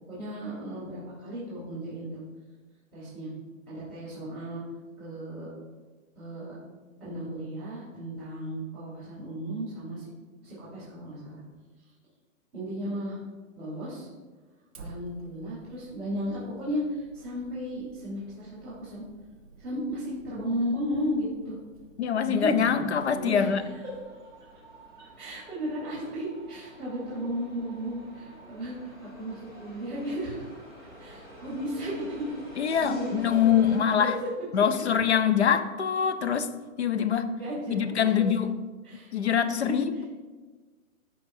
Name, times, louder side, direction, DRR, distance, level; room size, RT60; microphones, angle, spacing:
voice 1, 0.1-2.2 2.9-3.3 3.7-4.6 5.0-5.5 6.1-6.5 7.0-10.1 10.4-11.4 11.8-11.9 12.5-13.2 13.6-14.1 14.8-19.0 19.6-21.6 22.2-23.5 25.2-30.5 31.0-34.1 37.3-38.1 38.8-39.1 39.7-39.8, equal, ahead, -16 dB, 2.3 m, -34 dB
Fire, 14.7-24.0, right 3 dB, 25° right, 0.5 m, -53 dB
voice 2, 22.0-23.7 32.6-34.2 34.5-37.3 37.7-38.5 39.1-40.1, left 8 dB, 55° left, 11 dB, 0.5 m, -24 dB
sound 1, 22.3-33.8, equal, 20° left, 0.8 m, -48 dB
13.5 x 5.2 x 2.6 m, 1.3 s
hypercardioid pair, 175°, 42 cm